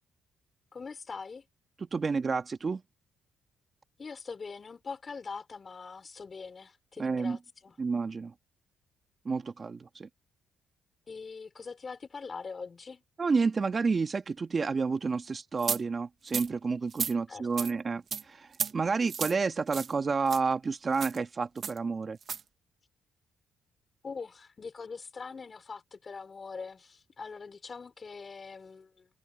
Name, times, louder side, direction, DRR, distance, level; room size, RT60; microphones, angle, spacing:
voice 1, 0.7-1.5 4.0-7.7 11.1-13.0 17.3-17.7 24.0-29.1, left 5 dB, 35° left, 4.1 m, -43 dB
voice 2, 1.8-2.8 7.0-7.4 7.8-8.3 9.3-10.1 13.2-22.2, right 4 dB, 35° right, 1.9 m, -30 dB
sound 1, 15.6-15.8 16.3-16.5 16.9-17.1 17.6-17.7 18.1-18.2 18.5-18.7 19.1-19.3 19.7-19.9 20.3-20.4 20.9-21.2 21.6-21.8 22.2-22.4, right 7 dB, 50° right, 1.8 m, -33 dB
cardioid pair, 90°, 0 cm